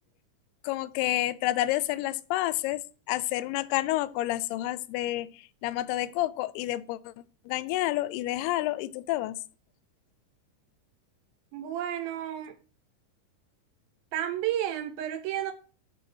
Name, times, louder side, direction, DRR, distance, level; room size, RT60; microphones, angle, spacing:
voice 1, 0.6-2.8 3.1-7.1 7.5-9.4, left 16 dB, 85° left, 2.6 m, -29 dB
voice 2, 11.5-12.6 14.1-15.5, right 11 dB, 80° right, 2.3 m, -31 dB
9.0 x 4.7 x 6.1 m
omnidirectional pair, 4.6 m